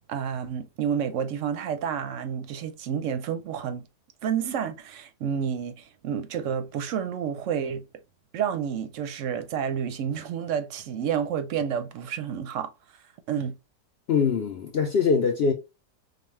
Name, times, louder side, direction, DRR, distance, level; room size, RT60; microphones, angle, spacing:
voice 1, 0.1-3.9 4.2-7.9 8.3-12.7 13.3-13.6, right 8 dB, 65° right, 0.8 m, -30 dB
voice 2, 14.1-15.5, left 5 dB, 80° left, 0.5 m, -23 dB
5.0 x 2.2 x 3.1 m
omnidirectional pair, 1.7 m